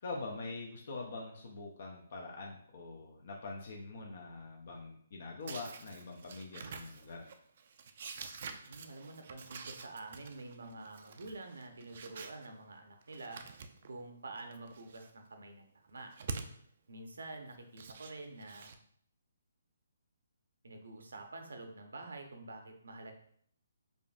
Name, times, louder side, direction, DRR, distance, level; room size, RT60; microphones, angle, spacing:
voice 1, 0.0-7.3, left 3 dB, 55° left, 0 dB, 0.5 m, -44 dB
sound 1, 5.4-12.5 13.0-14.0 14.4-15.1 15.9-16.6 17.5-18.7, right 5 dB, 50° right, 0.3 m, -47 dB
voice 2, 8.7-13.4 13.9-16.1 16.9-18.7 20.6-23.1, right 2 dB, 85° right, 4 dB, 0.7 m, -48 dB
5.0 x 2.5 x 2.4 m, 0.62 s
hypercardioid pair, 160°, 0 cm